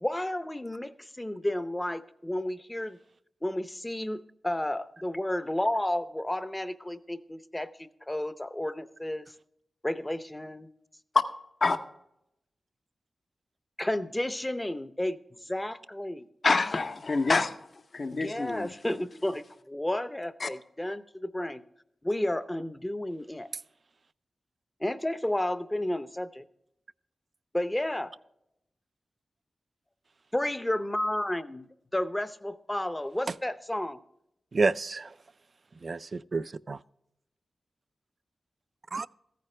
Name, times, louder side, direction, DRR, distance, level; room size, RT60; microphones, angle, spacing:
voice 1, 0.0-3.0 3.4-7.7 8.1-9.3 9.8-10.7 13.8-15.2 15.5-16.3 18.1-21.6 22.0-23.5 24.8-26.4 27.5-28.1 30.3-34.0, left 1 dB, 15° left, 0.6 m, -32 dB
voice 2, 16.4-17.5 17.9-18.7 20.4-20.5, left 3 dB, 55° left, 0.7 m, -26 dB
voice 3, 34.5-35.1 35.8-36.8 38.9-39.1, right 3 dB, 50° right, 0.3 m, -29 dB
14.5 x 9.3 x 3.3 m
wide cardioid pair, 75°, 0 cm